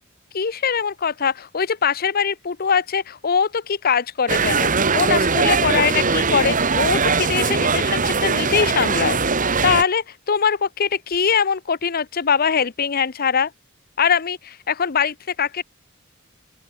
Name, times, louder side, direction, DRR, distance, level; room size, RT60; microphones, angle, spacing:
voice 1, 0.3-9.2 9.6-13.5 14.0-15.6, left 6 dB, 45° left, 0.7 m, -22 dB
sound 1, 4.3-9.8, right 4 dB, 40° right, 2.0 m, -20 dB
open air
head